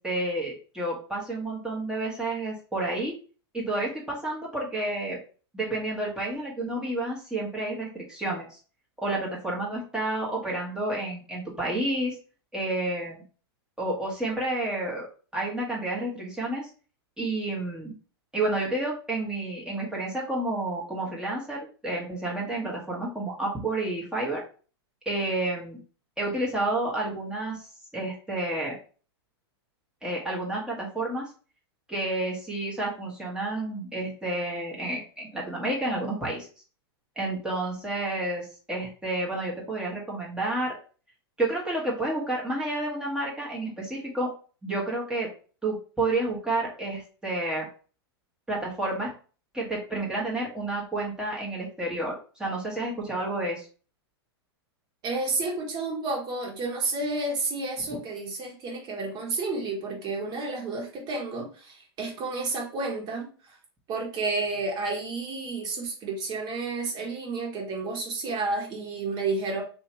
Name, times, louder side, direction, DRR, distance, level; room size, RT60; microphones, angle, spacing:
voice 1, 0.0-3.1 3.5-5.2 5.5-8.6 9.0-12.1 12.5-13.2 13.8-15.1 15.3-16.7 17.2-17.9 18.3-24.4 25.0-25.8 26.2-27.7 27.9-28.8 30.0-31.3 31.9-36.5 37.2-40.7 41.4-44.3 44.6-45.3 45.6-47.7 48.5-49.1 49.5-53.7, right 2 dB, 5° right, -4 dB, 1.3 m, -30 dB
voice 2, 55.0-63.6 63.9-69.6, right 3 dB, 30° right, -1 dB, 1.5 m, -31 dB
3.0 x 2.8 x 4.3 m, 0.39 s
hypercardioid pair, 125°, 13 cm